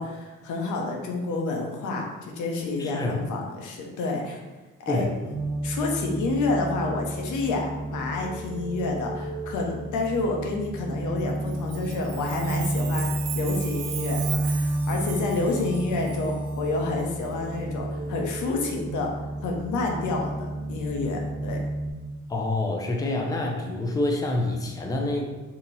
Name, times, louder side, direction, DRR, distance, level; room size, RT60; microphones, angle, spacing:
voice 1, 0.0-4.4 4.8-5.3 5.6-13.1 13.3-19.1 19.4-21.6, left 3 dB, 75° left, 1 dB, 0.7 m, -29 dB
voice 2, 2.8-3.2 4.9-5.1 22.3-25.2, left 2 dB, 10° left, 0 dB, 0.5 m, -27 dB
sound 1, 5.3-21.9, right 1 dB, 25° right, 1.0 m, -31 dB
Chime, 11.4-16.5, right 10 dB, 80° right, 0.5 m, -38 dB
2.9 x 2.8 x 4.0 m, 1.2 s
cardioid pair, 90°, 30 cm